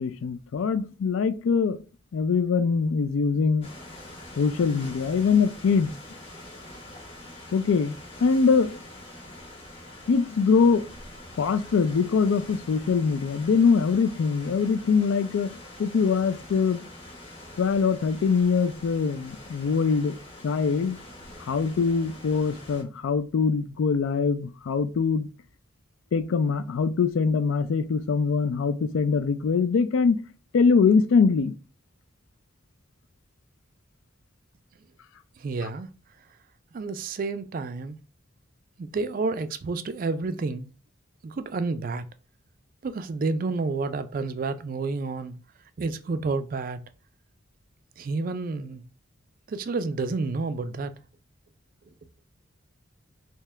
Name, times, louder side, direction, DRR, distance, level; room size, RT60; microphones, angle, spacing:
voice 1, 0.0-1.8 2.1-3.7 4.4-5.9 7.5-8.8 10.1-10.9 11.4-15.5 15.8-16.8 17.6-20.2 20.4-21.0 21.4-25.3 26.1-30.2 30.5-31.5, left 5 dB, 75° left, 0.4 m, -23 dB
sound 1, 3.6-22.8, left 1 dB, 30° left, 1.1 m, -45 dB
voice 2, 35.4-35.9 36.7-38.0 38.8-40.7 41.2-42.0 42.8-45.3 45.8-46.8 48.0-48.8 49.5-50.9, right 3 dB, 40° right, 0.3 m, -30 dB
3.4 x 2.8 x 3.2 m
head